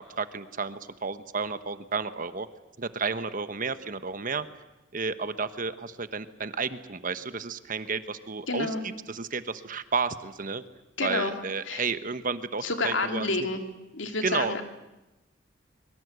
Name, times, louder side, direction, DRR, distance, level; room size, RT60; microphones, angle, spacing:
voice 1, 0.0-2.5 2.8-4.4 4.9-8.7 9.1-10.6 11.0-13.3 14.2-14.5, right 4 dB, 45° right, 12 dB, 1.1 m, -32 dB
voice 2, 8.5-8.8 11.0-11.3 11.7-11.8 12.6-13.6 13.9-14.6, left 3 dB, 75° left, 5 dB, 2.7 m, -29 dB
24.0 x 22.5 x 8.1 m, 0.99 s
head